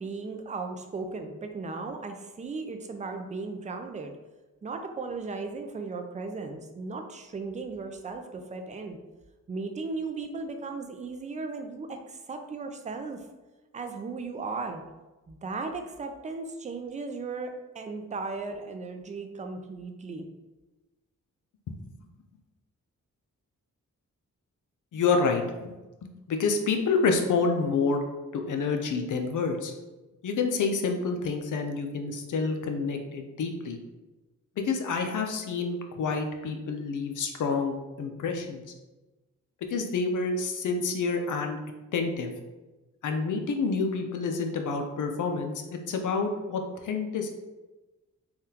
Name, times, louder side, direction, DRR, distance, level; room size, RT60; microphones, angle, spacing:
voice 1, 0.0-4.1 4.6-9.0 9.5-13.2 13.7-14.8 15.3-20.3, right 4 dB, 25° right, 5 dB, 0.4 m, -36 dB
voice 2, 24.9-25.7 26.0-28.0 28.3-29.7 30.2-33.8 34.6-38.6 39.7-41.6 41.9-42.3 43.0-47.3, left 4 dB, 70° left, 4 dB, 0.5 m, -28 dB
3.5 x 2.3 x 2.8 m, 1.1 s
cardioid pair, 90°, 32 cm